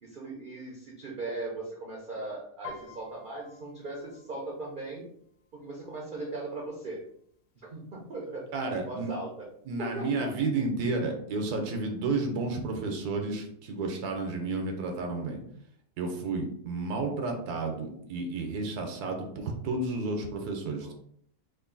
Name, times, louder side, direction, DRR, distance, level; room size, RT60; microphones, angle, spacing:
voice 1, 0.0-5.1 5.5-7.0 7.7-9.3 9.8-10.3 20.8-20.9, right 2 dB, 50° right, -2 dB, 0.6 m, -38 dB
Piano, 2.6-6.3 6.6-7.0 7.4-8.0 8.6-8.7 8.9-10.0 10.3-10.4, left 5 dB, 85° left, 1.3 m, -50 dB
voice 2, 8.5-9.2 9.7-15.4 16.0-20.9, right 3 dB, 80° right, 3 dB, 1.2 m, -31 dB
3.1 x 2.5 x 3.8 m, 0.68 s
omnidirectional pair, 1.6 m